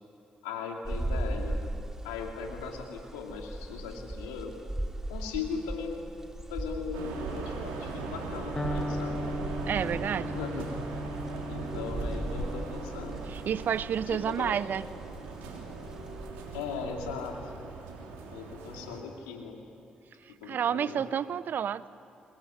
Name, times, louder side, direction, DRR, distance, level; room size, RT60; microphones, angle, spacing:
voice 1, 0.4-1.6 2.0-4.5 5.1-6.0 6.5-9.2 9.8-9.9 10.2-10.8 11.5-13.2 14.1-14.6 16.5-17.5 18.3-19.6 20.4-21.0, left 5 dB, 90° left, 2 dB, 2.5 m, -38 dB
sound 1, 0.8-16.3, right 1 dB, 15° right, 2.5 m, -39 dB
sound 2, 6.9-19.0, right 5 dB, 85° right, 3.2 m, -39 dB
Electric guitar, 8.6-16.4, left 1 dB, 20° left, 1.5 m, -39 dB
voice 2, 9.7-10.4 13.3-14.8 20.4-21.9, right 8 dB, 65° right, 17 dB, 0.7 m, -30 dB
23.0 x 21.0 x 9.8 m, 2.7 s
hypercardioid pair, 40°, 4 cm